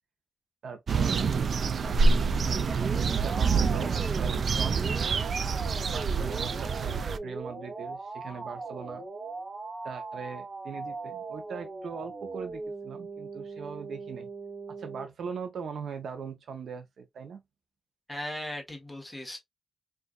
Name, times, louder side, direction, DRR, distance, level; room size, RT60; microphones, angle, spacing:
voice 1, 0.6-2.7 3.2-5.2 5.9-9.0 9.8-14.3 14.7-17.4, right 6 dB, 75° right, 0.7 m, -40 dB
sound 1, 0.9-7.2, right 4 dB, 50° right, 0.3 m, -26 dB
sound 2, 2.2-15.1, right 3 dB, 35° right, 1.2 m, -40 dB
voice 2, 18.1-19.4, left 1 dB, 10° left, 1.3 m, -37 dB
4.5 x 2.5 x 2.3 m
wide cardioid pair, 145°, 0 cm